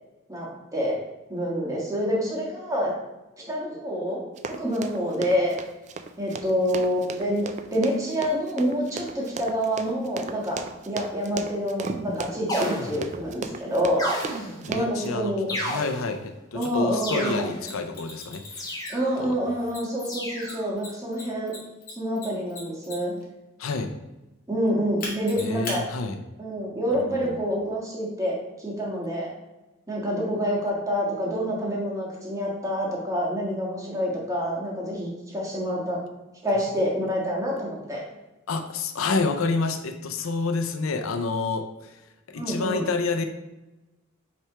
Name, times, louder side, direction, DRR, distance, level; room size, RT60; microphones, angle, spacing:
voice 1, 1.3-2.9 3.5-4.2 4.5-5.6 6.2-7.5 7.7-15.5 16.5-17.5 18.9-21.6 22.0-23.1 24.5-25.8 26.4-29.3 29.9-36.0 36.4-38.0 42.3-42.9, equal, 15° right, -4 dB, 1.6 m, -27 dB
Run, 4.4-15.1, right 4 dB, 35° right, 0.4 m, -36 dB
sound 1, 12.5-13.3 14.0-14.8 15.5-16.3 17.0-17.7 18.5-19.2 20.0-20.7, equal, 20° left, 1.2 m, -32 dB
voice 2, 14.7-18.8 19.2-19.3 23.6-23.9 25.4-26.2 27.2-27.4 38.5-42.0 42.3-43.2, left 4 dB, 75° left, 6 dB, 0.5 m, -28 dB
Mechanisms, 16.6-16.7 17.6-19.2 19.7-23.2 25.0-25.8, left 2 dB, 45° left, 1.9 m, -38 dB
5.9 x 3.4 x 4.8 m, 1.0 s
head